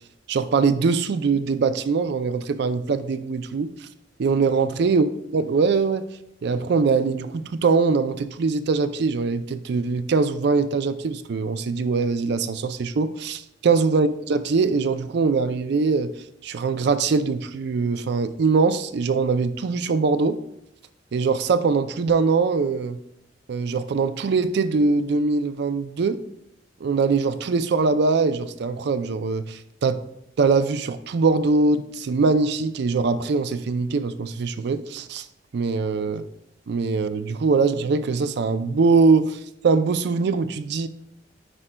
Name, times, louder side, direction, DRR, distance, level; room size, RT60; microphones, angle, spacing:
voice 1, 0.3-3.9 4.2-5.1 5.3-6.1 6.4-16.1 16.4-20.4 21.1-23.0 23.5-26.2 26.8-30.0 30.4-35.3 35.5-36.2 36.7-40.9, right 4 dB, 60° right, 12 dB, 0.4 m, -22 dB
9.7 x 4.9 x 2.2 m, 0.81 s
head